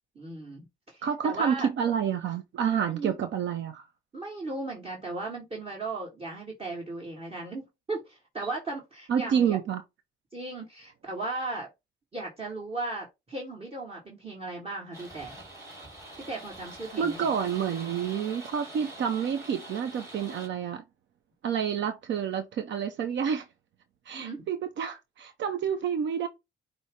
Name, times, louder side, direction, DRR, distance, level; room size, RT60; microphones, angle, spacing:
voice 1, 0.1-0.6 0.9-1.7 2.9-3.1 4.1-9.6 10.3-11.7 12.1-15.4 16.3-17.3 24.1-24.4, right 2 dB, 30° right, 1.6 m, -36 dB
voice 2, 1.0-3.8 9.1-9.8 17.0-20.8 21.4-23.4 24.1-26.3, right 8 dB, 70° right, 0.7 m, -29 dB
sound 1, 14.9-20.5, right 1 dB, 15° right, 2.4 m, -45 dB
5.4 x 2.0 x 4.6 m
cardioid pair, 90°, 20 cm